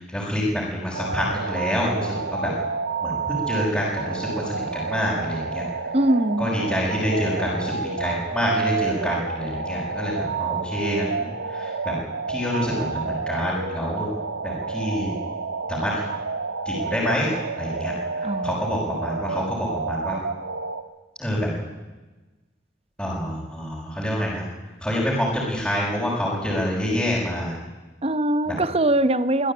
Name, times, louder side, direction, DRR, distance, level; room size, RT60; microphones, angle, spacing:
voice 1, 0.0-2.5 3.0-5.6 6.4-11.9 12.3-14.1 14.4-15.1 15.7-16.0 16.6-17.3 17.6-20.2 21.2-21.5 23.0-24.4 24.8-27.5 28.5-28.6, equal, 5° left, -7 dB, 6.1 m, -27 dB
sound 1, 0.9-20.8, right 4 dB, 80° right, 1.5 m, -30 dB
voice 2, 5.9-6.5 18.2-18.5 28.0-29.5, right 1 dB, 30° right, 14 dB, 0.9 m, -21 dB
24.0 x 16.5 x 8.9 m, 1.2 s
head